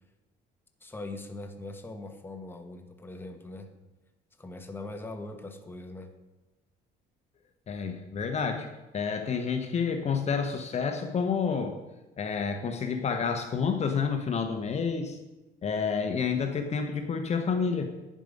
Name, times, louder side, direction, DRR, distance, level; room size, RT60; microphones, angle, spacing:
voice 1, 0.8-3.7 4.4-6.1, left 2 dB, 15° left, 5 dB, 1.2 m, -41 dB
voice 2, 7.7-8.7 8.9-11.8 12.2-15.2 15.6-17.9, left 5 dB, 40° left, 6 dB, 1.0 m, -29 dB
9.6 x 7.5 x 5.3 m, 1.0 s
cardioid pair, 110°, 17 cm